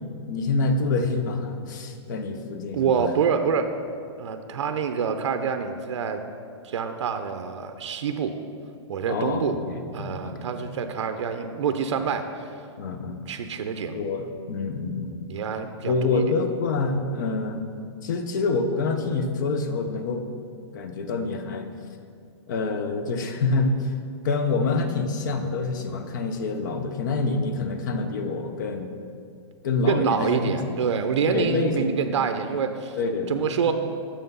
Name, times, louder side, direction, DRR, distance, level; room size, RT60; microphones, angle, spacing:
voice 1, 0.3-3.0 9.1-10.7 12.8-13.2 13.9-15.2 15.8-17.6 18.0-20.2 20.7-21.7 22.5-23.9 24.2-28.9 29.6-30.6 31.3-32.0 33.0-33.7, left 3 dB, 40° left, 7 dB, 0.6 m, -27 dB
voice 2, 2.7-3.7 4.2-6.2 6.6-8.3 8.9-9.6 9.9-12.5 13.3-14.0 15.3-16.3 29.9-33.0 33.3-33.7, right 6 dB, 80° right, 7 dB, 0.5 m, -26 dB
6.7 x 5.7 x 5.4 m, 2.3 s
hypercardioid pair, 175°, 15 cm